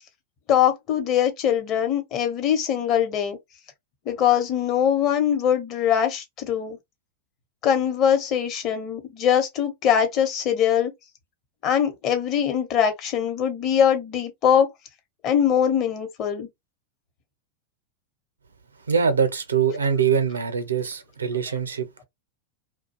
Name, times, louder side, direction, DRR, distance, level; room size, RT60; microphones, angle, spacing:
voice 1, 0.5-3.4 4.1-6.8 7.6-10.9 11.6-14.7 15.2-16.5, left 9 dB, 40° left, 0.9 m, -22 dB
voice 2, 18.9-22.0, right 7 dB, 80° right, 0.6 m, -23 dB
2.4 x 2.1 x 2.8 m
figure-of-eight pair, 95°, 0 cm